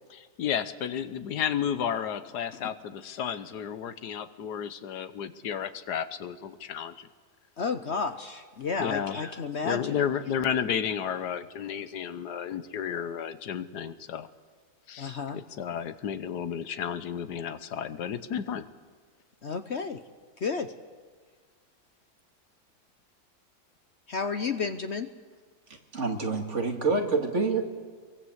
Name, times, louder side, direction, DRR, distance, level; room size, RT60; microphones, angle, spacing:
voice 1, 0.1-7.1 8.8-9.2 9.6-14.3 14.9-18.7, left 8 dB, 90° left, 13 dB, 1.6 m, -32 dB
voice 2, 7.6-10.0 15.0-15.4 19.4-20.0 20.4-20.7 24.1-25.1, left 5 dB, 50° left, 10 dB, 1.0 m, -32 dB
voice 3, 25.7-27.6, right 4 dB, 45° right, 3 dB, 2.6 m, -27 dB
25.0 x 23.0 x 8.0 m, 1.5 s
omnidirectional pair, 1.7 m